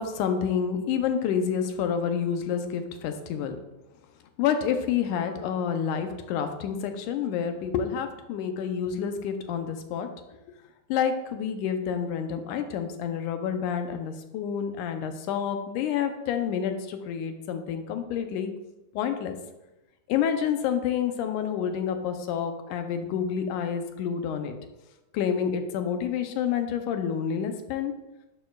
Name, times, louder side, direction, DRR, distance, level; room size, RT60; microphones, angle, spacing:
voice 1, 0.0-3.6 4.4-10.1 10.9-18.5 18.9-19.4 20.1-24.6 25.1-27.9, left 8 dB, 85° left, 7 dB, 2.2 m, -28 dB
11.0 x 6.6 x 2.3 m, 0.98 s
omnidirectional pair, 3.5 m